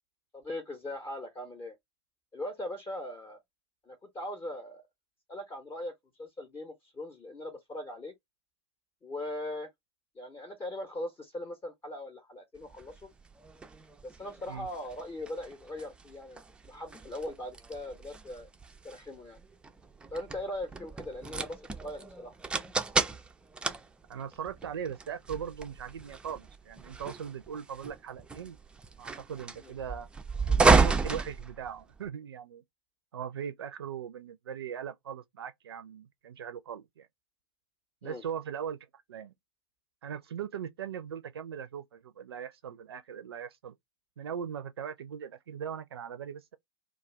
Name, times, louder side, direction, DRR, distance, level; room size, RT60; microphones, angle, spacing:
voice 1, 0.3-1.8 2.3-3.4 3.9-4.9 5.3-5.9 6.2-8.1 9.0-9.7 10.2-13.1 14.0-18.5 18.8-19.4 20.1-22.3 29.6-29.7 38.0-38.2, left 1 dB, 20° left, 0.7 m, -40 dB
sound 1, 12.7-32.1, right 4 dB, 5° right, 0.4 m, -32 dB
voice 2, 24.1-28.6 29.0-30.1 30.5-32.6 33.1-37.1 38.0-38.8 39.1-39.3 40.0-43.7 44.2-46.5, right 8 dB, 70° right, 0.4 m, -39 dB
2.3 x 2.3 x 3.2 m
figure-of-eight pair, 90°, 14 cm